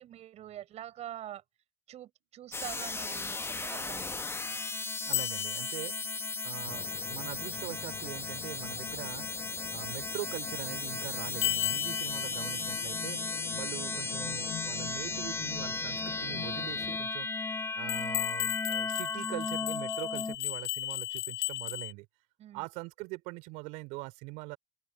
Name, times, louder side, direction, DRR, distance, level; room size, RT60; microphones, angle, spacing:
voice 1, 0.0-1.4 1.9-4.2 13.4-13.7 22.4-22.7, right 12 dB, 60° right, 6.3 m, -45 dB
sound 1, 2.5-20.4, left 3 dB, 20° left, 1.1 m, -36 dB
voice 2, 5.0-6.0 6.4-9.3 9.7-13.2 13.6-17.3 17.8-22.1 22.5-24.6, right 24 dB, 75° right, 3.6 m, -42 dB
sound 2, 5.1-6.5 11.4-13.4 17.9-21.9, left 21 dB, 80° left, 0.7 m, -35 dB
sound 3, 6.6-17.0, left 12 dB, 55° left, 1.2 m, -47 dB
open air
hypercardioid pair, 65°, 13 cm